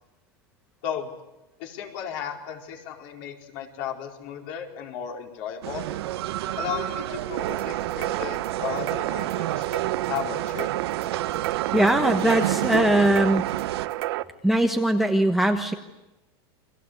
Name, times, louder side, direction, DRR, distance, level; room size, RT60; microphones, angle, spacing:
voice 1, 0.8-1.1 1.6-5.9 6.6-10.7, left 9 dB, 55° left, 2 dB, 4.7 m, -35 dB
sound 1, 5.6-13.9, right 13 dB, 85° right, 1.6 m, -31 dB
sound 2, 7.4-14.2, right 16 dB, 70° right, 1.1 m, -30 dB
voice 2, 11.7-13.4 14.4-15.7, right 1 dB, ahead, 4 dB, 1.2 m, -21 dB
29.0 x 23.5 x 8.3 m, 0.98 s
supercardioid pair, 160°, 13 cm